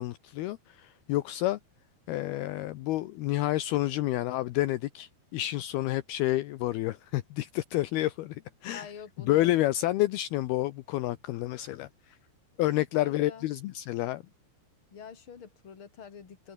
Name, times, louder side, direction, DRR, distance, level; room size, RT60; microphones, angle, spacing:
voice 1, 0.0-1.6 2.1-8.9 9.3-12.2 12.6-14.2, left 16 dB, 75° left, 2.6 m, -29 dB
voice 2, 8.6-9.6 12.7-13.5 14.9-16.5, left 7 dB, 35° left, 3.4 m, -46 dB
omnidirectional pair, 5.0 m